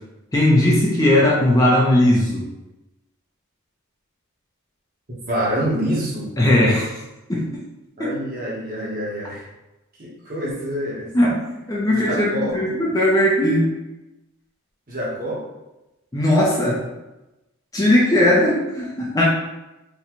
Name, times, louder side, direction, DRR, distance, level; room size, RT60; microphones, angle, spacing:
voice 1, 0.3-2.5 6.4-6.9 7.3-7.5 11.1-11.4 11.7-13.7 16.1-16.8 17.7-19.2, left 1 dB, 15° left, -4 dB, 0.5 m, -18 dB
voice 2, 5.3-6.3 8.0-9.5 10.0-11.1 11.9-12.5 14.9-15.4, equal, 40° right, -5 dB, 1.0 m, -26 dB
3.8 x 2.2 x 3.0 m, 1.0 s
head